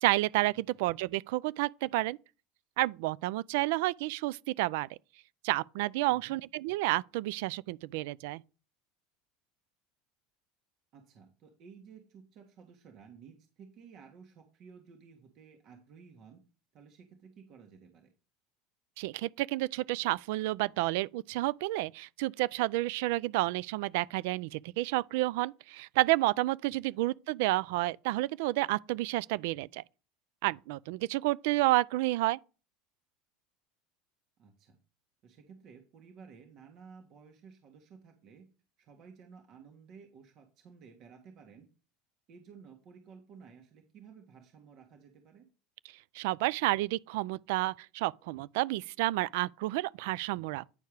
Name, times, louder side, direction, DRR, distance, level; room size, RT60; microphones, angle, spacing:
voice 1, 0.0-2.2 2.8-5.0 5.4-8.4 19.0-29.8 30.4-32.4 46.1-50.6, right 19 dB, 75° right, 0.3 m, -30 dB
voice 2, 6.1-6.4 10.9-16.4 16.7-18.1 26.7-27.0 34.4-34.8 35.2-38.5 38.8-41.7 42.3-45.5, right 6 dB, 50° right, 1.6 m, -54 dB
9.5 x 4.6 x 4.9 m
supercardioid pair, 110°, 0 cm